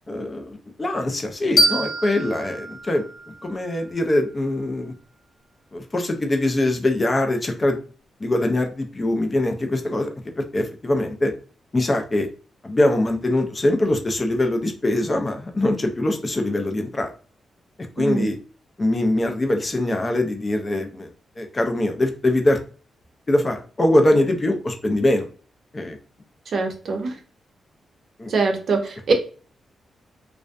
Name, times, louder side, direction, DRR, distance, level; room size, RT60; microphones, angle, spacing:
voice 1, 0.1-3.0 3.4-4.9 5.7-7.8 8.2-10.1 10.4-11.3 11.7-12.3 12.6-17.1 18.0-18.4 18.8-21.1 21.4-22.6 23.3-25.3 25.7-26.0 28.2-28.3, left 1 dB, 25° left, 4 dB, 0.4 m, -22 dB
sound 1, 1.6-4.4, equal, 60° left, 0.7 m, -25 dB
voice 2, 18.0-18.3 26.5-27.1 28.3-29.1, right 4 dB, 60° right, 3 dB, 0.6 m, -23 dB
2.4 x 2.1 x 2.4 m, 0.38 s
cardioid pair, 110°, 0 cm